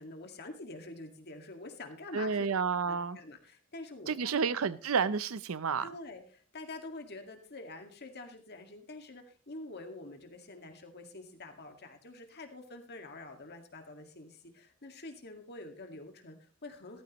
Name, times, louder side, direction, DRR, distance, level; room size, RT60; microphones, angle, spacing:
voice 1, 0.0-2.5 2.8-4.4 5.8-17.0, left 2 dB, 50° left, 5 dB, 2.0 m, -47 dB
voice 2, 2.1-3.2 4.1-5.9, right 5 dB, 75° right, 16 dB, 0.6 m, -30 dB
16.0 x 14.0 x 3.1 m, 0.37 s
head